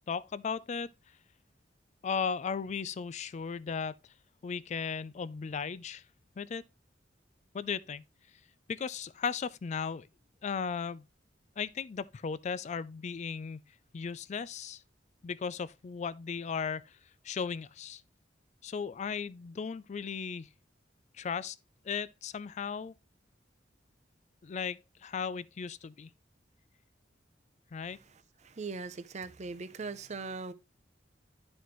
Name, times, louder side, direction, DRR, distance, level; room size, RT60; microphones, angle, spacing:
voice 1, 0.1-0.9 2.0-4.0 4.4-6.0 6.4-6.6 7.5-8.0 8.7-10.1 10.4-11.1 11.6-13.6 13.9-14.8 15.2-16.9 17.2-18.0 18.6-20.5 21.1-21.6 21.8-22.9 24.4-26.1 27.7-28.0, left 6 dB, 40° left, 0.3 m, -36 dB
voice 2, 28.4-30.5, right 4 dB, 40° right, 0.6 m, -39 dB
11.0 x 4.2 x 3.1 m
head